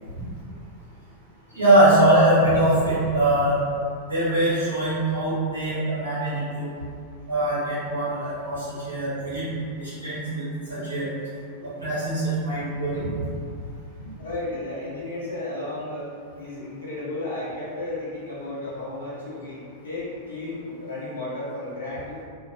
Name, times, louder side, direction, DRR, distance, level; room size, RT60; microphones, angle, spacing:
voice 1, 1.5-3.6 4.1-6.7 7.3-9.4 9.8-10.4 10.7-11.1 11.6-13.1 14.0-14.1, right 1 dB, 80° right, -12 dB, 1.0 m, -22 dB
voice 2, 14.2-16.1 16.4-19.6 19.8-22.2, left 2 dB, 70° left, -9 dB, 0.6 m, -33 dB
2.4 x 2.0 x 2.5 m, 2.2 s
figure-of-eight pair, 90°, 0 cm